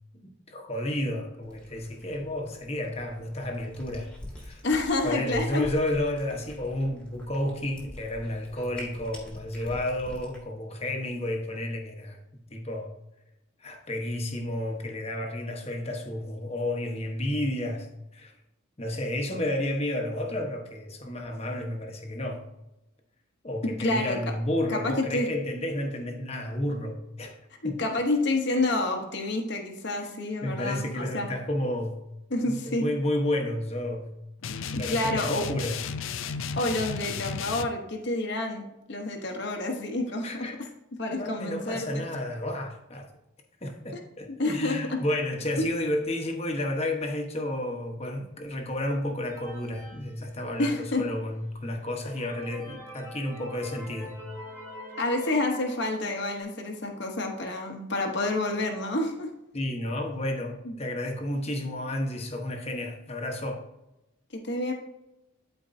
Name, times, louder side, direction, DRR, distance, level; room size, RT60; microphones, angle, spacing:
voice 1, 0.1-4.6 5.0-12.9 13.6-18.4 18.8-22.4 23.4-27.4 27.6-27.8 30.4-32.0 32.4-35.8 40.2-40.6 41.1-43.1 43.6-54.2 59.5-63.6, left 1 dB, 30° left, 1.1 m, -31 dB
Cat, 1.4-10.4, left 1 dB, 5° left, 1.7 m, -46 dB
voice 2, 4.6-5.7 23.8-24.2 24.7-25.3 27.6-31.3 32.3-32.8 34.7-35.5 36.6-40.7 41.0-42.0 43.9-44.0 44.4-44.8 45.6-45.7 50.6-51.0 55.0-59.3 60.6-60.7 64.3-64.7, left 2 dB, 55° left, 1.0 m, -29 dB
sound 1, 34.4-37.7, left 6 dB, 70° left, 0.5 m, -33 dB
sound 2, 49.2-50.9 51.4-51.5 51.9-56.4, equal, 10° right, 2.4 m, -45 dB
12.5 x 4.5 x 2.7 m
head